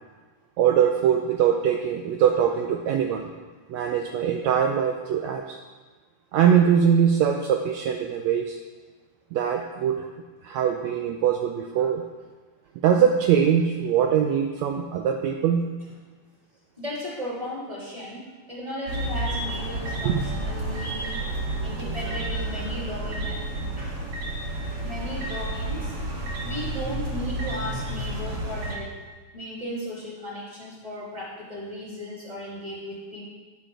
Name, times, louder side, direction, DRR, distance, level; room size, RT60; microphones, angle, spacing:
voice 1, 0.6-3.3 3.7-5.6 6.3-8.6 9.3-10.1 10.4-12.0 12.8-15.6 20.0-20.2, right 8 dB, 80° right, 3 dB, 1.7 m, -22 dB
voice 2, 16.8-18.2 18.5-23.9 24.8-25.9 26.4-28.9 29.3-33.2, left 1 dB, 10° right, -7 dB, 3.5 m, -36 dB
sound 1, 18.9-28.7, right 1 dB, 50° right, 0.9 m, -31 dB
11.5 x 10.0 x 3.8 m, 1.3 s
omnidirectional pair, 3.7 m